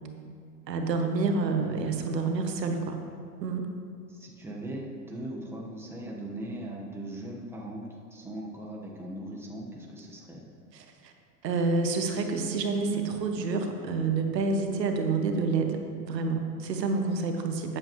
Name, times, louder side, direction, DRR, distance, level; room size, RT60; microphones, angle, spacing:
voice 1, 0.7-3.0 3.4-3.7 10.7-11.1 11.4-17.8, right 4 dB, 85° right, 5 dB, 1.2 m, -28 dB
voice 2, 4.1-10.4, right 1 dB, 5° right, -2 dB, 1.3 m, -39 dB
12.0 x 8.0 x 3.2 m, 2.3 s
hypercardioid pair, 110°, 48 cm